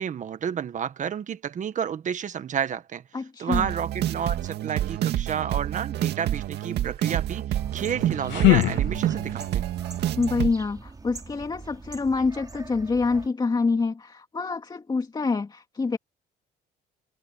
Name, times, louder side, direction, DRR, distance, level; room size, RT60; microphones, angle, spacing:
voice 1, 0.0-3.0 3.4-9.7, right 8 dB, 45° right, 1.5 m, -31 dB
voice 2, 3.1-3.7 10.2-16.0, left 4 dB, 25° left, 2.6 m, -26 dB
sound 1, 3.5-10.5, right 12 dB, 70° right, 2.0 m, -28 dB
sound 2, 7.6-13.3, right 3 dB, 20° right, 3.3 m, -43 dB
sound 3, 7.8-9.5, left 21 dB, 80° left, 0.5 m, -24 dB
cardioid pair, 120°, 18 cm